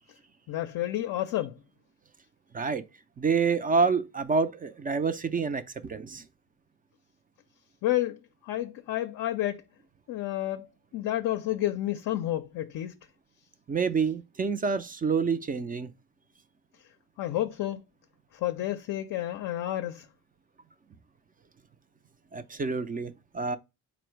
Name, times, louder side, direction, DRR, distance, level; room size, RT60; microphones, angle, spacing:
voice 1, 0.5-1.5 7.8-8.2 8.4-9.6 10.1-10.7 10.9-12.9 17.2-17.8 18.4-20.0, left 14 dB, 55° left, 0.5 m, -30 dB
voice 2, 2.5-2.8 3.2-6.2 13.7-15.9 22.3-23.6, right 5 dB, 25° right, 0.4 m, -28 dB
4.3 x 2.1 x 4.4 m
supercardioid pair, 55°, 39 cm